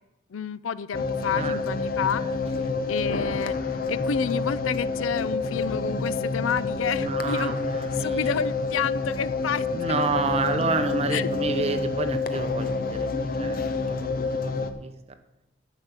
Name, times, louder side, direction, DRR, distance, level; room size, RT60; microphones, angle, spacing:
voice 1, 0.3-2.2 2.9-3.5 3.9-7.5 8.0-9.7 11.1-11.3, left 7 dB, 85° left, 17 dB, 0.5 m, -29 dB
sound 1, 0.9-14.7, left 3 dB, 45° left, 0.7 m, -28 dB
voice 2, 1.3-1.6 2.2-2.4 2.6-2.7 7.0-8.5 9.7-14.9, right 3 dB, 30° right, 8 dB, 0.8 m, -30 dB
10.0 x 5.8 x 8.2 m, 0.93 s
head